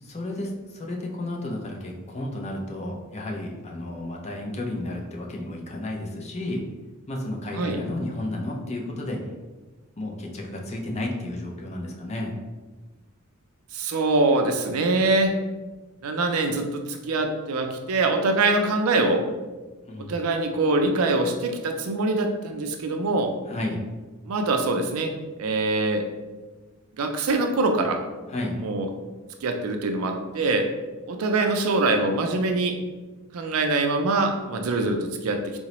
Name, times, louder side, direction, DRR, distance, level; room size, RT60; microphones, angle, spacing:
voice 1, 0.0-6.6 7.1-9.2 10.0-12.3 19.9-20.1 23.5-23.8 28.3-28.6, left 1 dB, 30° left, -1 dB, 0.5 m, -32 dB
voice 2, 13.7-15.3 16.0-19.2 20.0-23.3 24.3-25.1 25.4-26.1 27.0-28.0 28.6-28.9 29.4-30.7 31.1-32.8 33.3-35.6, right 2 dB, 85° right, 5 dB, 0.4 m, -24 dB
3.8 x 2.1 x 2.9 m, 1.2 s
head